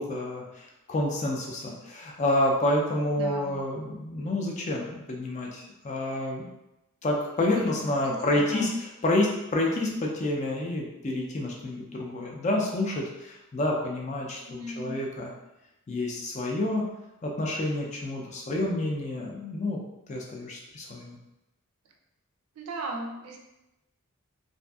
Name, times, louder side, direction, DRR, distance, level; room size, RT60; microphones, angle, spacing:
voice 1, 0.0-6.5 7.0-15.3 15.9-16.9 17.2-19.8 20.1-21.2, left 1 dB, 30° left, -1 dB, 0.3 m, -29 dB
voice 2, 3.2-3.6 7.6-7.7 8.0-8.7 14.4-15.0 22.6-23.4, right 2 dB, 80° right, 3 dB, 0.4 m, -37 dB
2.5 x 2.4 x 2.2 m, 0.94 s
head